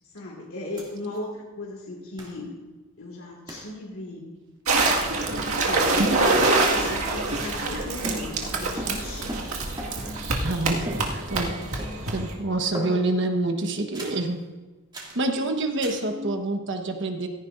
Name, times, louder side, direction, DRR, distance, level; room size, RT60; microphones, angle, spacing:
voice 1, 0.0-2.5 3.0-4.3 5.1-9.5 9.9-10.3 11.5-11.9 12.7-12.8 15.7-16.3, left 2 dB, 75° left, -3 dB, 2.3 m, -38 dB
sound 1, 0.8-0.9 1.1-1.2 2.2-2.4 3.5-3.7 4.8-5.1 5.7-6.1 6.3-7.8 8.0-10.2 10.9-11.5 11.8-12.2 12.7-13.3 13.9-14.3 14.9-15.2 15.8-16.1, right 1 dB, 20° right, 2.5 m, -37 dB
sound 2, 4.7-12.3, right 3 dB, 85° right, 2.0 m, -25 dB
voice 2, 10.4-10.9 11.3-11.8 12.1-14.4 15.1-17.3, right 2 dB, 60° right, 5 dB, 1.3 m, -27 dB
16.5 x 14.5 x 2.6 m, 1.3 s
head